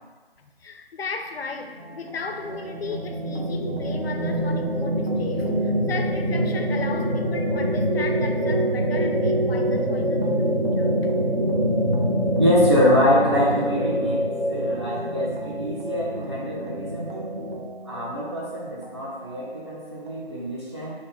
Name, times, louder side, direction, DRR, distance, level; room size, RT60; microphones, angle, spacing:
voice 1, 0.4-11.1, left 4 dB, 75° left, 5 dB, 0.5 m, -35 dB
sound 1, 1.8-17.6, equal, 50° right, 0.9 m, -25 dB
sound 2, 1.8-20.3, right 3 dB, 75° right, 0.6 m, -42 dB
voice 2, 12.4-14.2 14.5-17.3 17.8-21.0, equal, 25° right, -8 dB, 0.6 m, -24 dB
3.4 x 2.1 x 3.8 m, 1.3 s
figure-of-eight pair, 170°, 31 cm